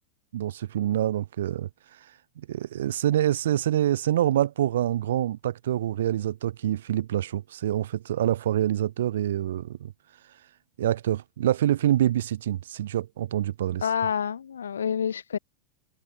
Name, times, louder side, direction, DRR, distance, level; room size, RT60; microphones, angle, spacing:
voice 1, 0.3-1.7 2.4-9.9 10.8-13.9, right 12 dB, 75° right, 5.7 m, -26 dB
voice 2, 13.8-15.4, left 7 dB, 85° left, 2.0 m, -28 dB
hypercardioid pair, 100°, 0 cm